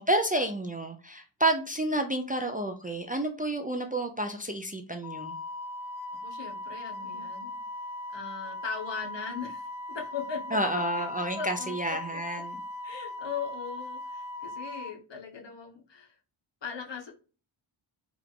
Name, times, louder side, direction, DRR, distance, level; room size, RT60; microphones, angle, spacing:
voice 1, 0.0-5.3 10.5-12.6, right 1 dB, 20° right, 5 dB, 0.4 m, -30 dB
Wind instrument woodwind instrument, 5.0-14.9, left 2 dB, 40° left, 0.6 m, -39 dB
voice 2, 6.2-7.6 8.1-10.8 11.3-11.8 12.1-12.2 12.8-16.1 16.6-17.1, left 6 dB, 60° left, 1 dB, 1.1 m, -39 dB
4.7 x 2.4 x 3.6 m, 0.35 s
wide cardioid pair, 95°, 50 cm